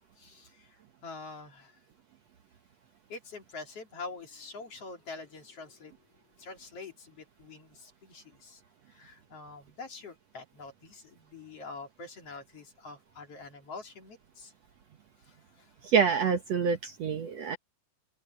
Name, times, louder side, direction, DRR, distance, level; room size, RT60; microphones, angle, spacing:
voice 1, 0.0-1.8 3.1-5.9 6.4-8.6 8.9-14.5 15.2-15.7, left 3 dB, 45° left, 3.8 m, -46 dB
voice 2, 15.8-17.6, right 6 dB, 60° right, 2.0 m, -26 dB
omnidirectional pair, 4.0 m